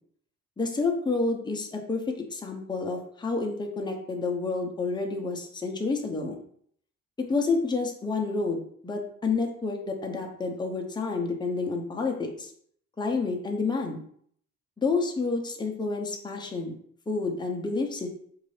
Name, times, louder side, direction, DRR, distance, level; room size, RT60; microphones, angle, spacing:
voice 1, 0.6-6.4 7.2-12.5 13.0-14.0 14.8-16.7 17.1-18.1, left 3 dB, 15° left, 2 dB, 0.7 m, -29 dB
4.5 x 2.6 x 3.2 m, 0.63 s
cardioid pair, 90°, 30 cm